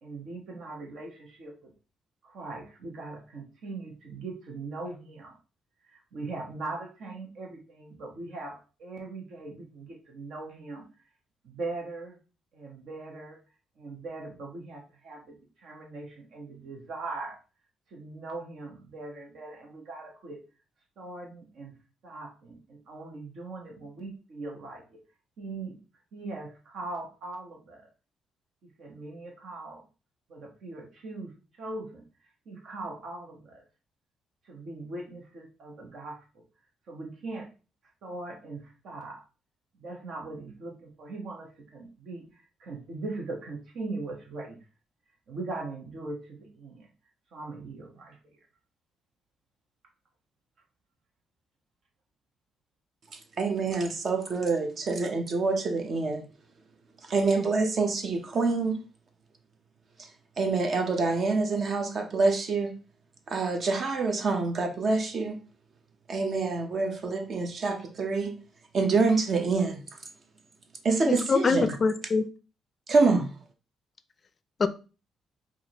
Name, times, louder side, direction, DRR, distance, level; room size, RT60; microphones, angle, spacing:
voice 1, 0.0-1.7 2.2-5.4 5.8-10.9 11.4-12.2 12.5-13.4 13.8-17.4 17.9-20.4 21.0-21.7 22.0-25.0 25.4-25.8 26.1-27.9 28.8-29.8 30.3-31.3 31.6-32.0 32.4-33.6 34.4-36.4 36.9-37.5 38.0-39.2 39.8-44.6 45.3-46.9 47.3-48.3, right 3 dB, 70° right, 1.2 m, -40 dB
voice 2, 53.1-56.2 57.0-58.8 60.0-60.1 60.4-62.7 63.3-65.4 66.1-68.4 68.7-69.8 70.8-71.8 72.9-73.3, right 3 dB, 50° right, 0.8 m, -26 dB
voice 3, 71.1-72.2 74.6-74.7, left 4 dB, 40° left, 0.4 m, -24 dB
4.7 x 2.6 x 2.9 m
cardioid pair, 90°, 0 cm